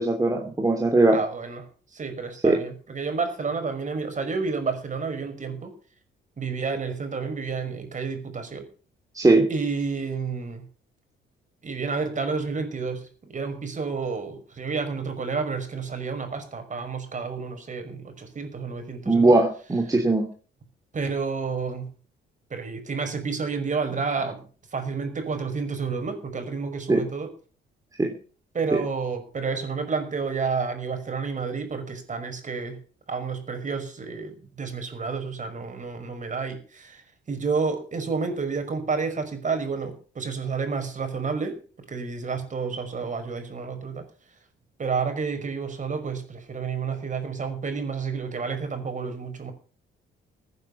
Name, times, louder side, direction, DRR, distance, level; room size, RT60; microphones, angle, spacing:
voice 1, 0.0-1.2 2.4-2.6 9.1-9.5 19.1-20.3 26.9-27.0 28.0-28.1 28.7-28.8, right 2 dB, 15° right, 2 dB, 3.0 m, -20 dB
voice 2, 1.1-1.6 1.9-5.8 6.4-8.6 9.5-10.6 11.6-19.4 20.9-21.9 22.5-27.3 28.5-32.8 33.1-41.6 41.9-44.0 44.8-49.5, right 5 dB, 40° right, 7 dB, 5.6 m, -30 dB
15.5 x 9.5 x 7.1 m, 0.41 s
cardioid pair, 90°, 20 cm